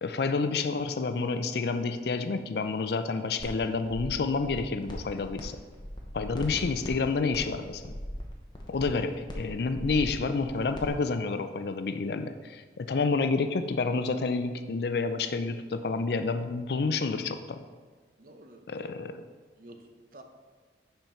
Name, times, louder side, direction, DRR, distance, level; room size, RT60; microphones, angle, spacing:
voice 1, 0.0-5.6 6.1-7.9 8.7-17.6 18.7-19.2, left 4 dB, 60° left, 9 dB, 0.4 m, -29 dB
sound 1, 3.4-3.5 3.8-5.4 5.7-10.9, equal, 25° left, 0.9 m, -39 dB
voice 2, 18.2-18.9 19.6-20.2, right 1 dB, 50° right, 5 dB, 0.7 m, -50 dB
5.6 x 4.4 x 5.5 m, 1.4 s
head